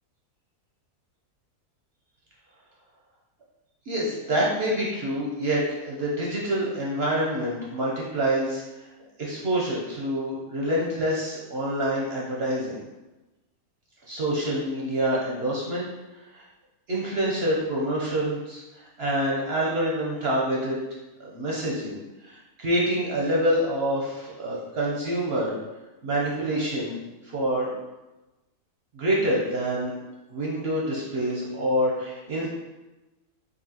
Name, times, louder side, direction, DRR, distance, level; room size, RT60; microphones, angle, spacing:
voice 1, 3.9-8.6 9.2-12.8 14.1-15.9 16.3-16.4 16.9-18.6 19.0-20.8 21.2-22.0 22.2-25.5 26.0-27.0 27.3-27.7 28.9-29.9 30.3-32.5, right 1 dB, 55° right, -4 dB, 0.7 m, -26 dB
5.4 x 2.5 x 2.8 m, 1.1 s
omnidirectional pair, 1.7 m